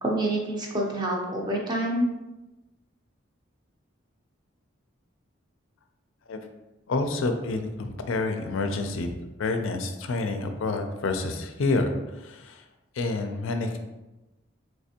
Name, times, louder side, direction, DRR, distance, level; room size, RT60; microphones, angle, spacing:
voice 1, 0.0-2.1, right 1 dB, 20° right, -1 dB, 0.5 m, -27 dB
voice 2, 6.9-9.1 9.4-12.6 12.9-13.8, left 3 dB, 80° left, 6 dB, 0.4 m, -28 dB
3.3 x 3.2 x 2.8 m, 1.0 s
head